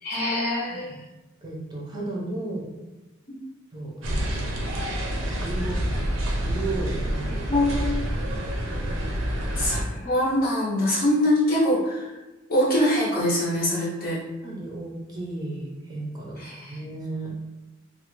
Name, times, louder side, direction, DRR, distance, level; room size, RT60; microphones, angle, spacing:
voice 1, 0.0-0.9 3.3-3.4 7.5-7.9 9.5-12.1 12.5-14.2 16.4-16.8, left 1 dB, 50° left, -7 dB, 0.7 m, -23 dB
voice 2, 1.4-2.7 3.7-4.5 5.4-6.0 6.4-7.2 14.4-16.4 16.7-17.3, right 2 dB, 20° right, -3 dB, 0.6 m, -34 dB
sound 1, 4.0-9.8, equal, 70° right, 0.6 m, -27 dB
3.1 x 2.1 x 3.0 m, 1.1 s
head